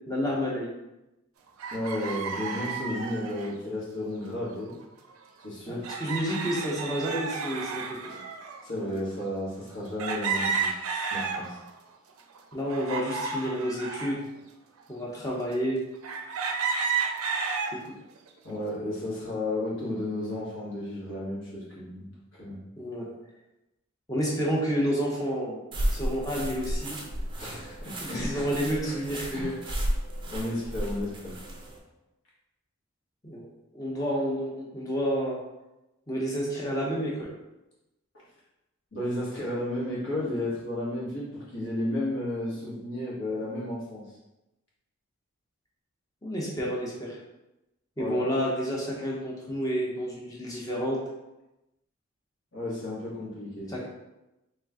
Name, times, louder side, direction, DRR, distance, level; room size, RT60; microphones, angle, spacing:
voice 1, 0.1-0.7 5.7-8.1 12.5-14.2 14.9-15.8 17.7-17.9 22.8-23.1 24.1-25.6 25.9-27.0 28.1-29.7 33.2-35.4 36.1-37.3 46.2-47.2 48.0-51.0 53.7-53.9, equal, 15° left, -3 dB, 0.7 m, -30 dB
sound 1, 1.6-3.5 4.7-4.8 5.1-5.2 5.8-8.6 9.2-9.3 10.0-11.7 12.2-14.1 14.8-14.9 16.0-17.7 18.3-18.7, right 5 dB, 85° right, 0.5 m, -32 dB
voice 2, 1.7-4.8 5.4-5.9 8.6-10.7 11.1-11.6 18.4-22.6 27.4-29.0 29.3-29.6 30.3-31.4 38.1-38.2 38.9-44.1 48.0-48.2 52.5-53.7, left 1 dB, 65° left, -6 dB, 1.5 m, -33 dB
sound 2, 25.7-31.8, equal, 25° right, 0.5 m, -33 dB
3.2 x 3.0 x 3.6 m, 0.96 s
head